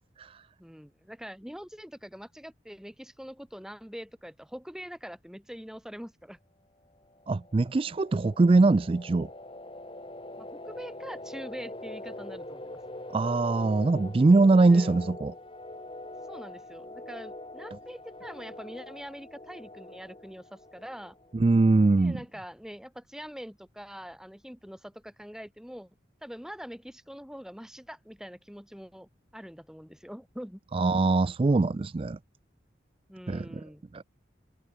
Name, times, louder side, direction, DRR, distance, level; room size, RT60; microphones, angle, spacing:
voice 1, 0.6-6.4 10.4-12.8 14.7-15.0 16.3-21.2 21.9-25.9 26.2-30.6 33.1-33.8, equal, 5° right, 2.9 m, -44 dB
sound 1, 7.1-21.6, left 1 dB, 30° left, 2.1 m, -43 dB
voice 2, 7.3-9.3 13.1-15.3 21.3-22.2 30.7-32.2 33.3-33.6 33.9-34.0, right 3 dB, 30° right, 0.3 m, -22 dB
head